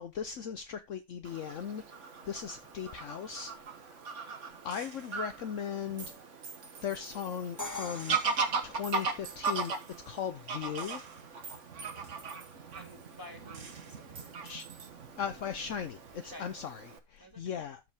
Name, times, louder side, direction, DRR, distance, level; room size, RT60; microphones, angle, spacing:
voice 1, 0.0-1.8 2.2-4.0 4.6-6.1 6.8-8.2 8.6-9.7 10.1-11.1 14.4-14.7 15.2-17.8, left 8 dB, 65° left, 1.1 m, -38 dB
Fowl / Bird vocalization bird call bird song, 1.2-17.0, right 4 dB, 55° right, 1.6 m, -39 dB
Gunshot gunfire, 4.7-5.3 6.0-7.7 8.0-10.2 10.8-13.3 13.5-14.9, right 5 dB, 75° right, 2.1 m, -50 dB
Crash cymbal, 7.6-9.5, left 2 dB, 15° left, 1.5 m, -43 dB
voice 2, 12.7-14.4 16.2-16.6 17.2-17.6, left 1 dB, 15° right, 2.7 m, -51 dB
13.0 x 5.1 x 3.5 m
omnidirectional pair, 1.5 m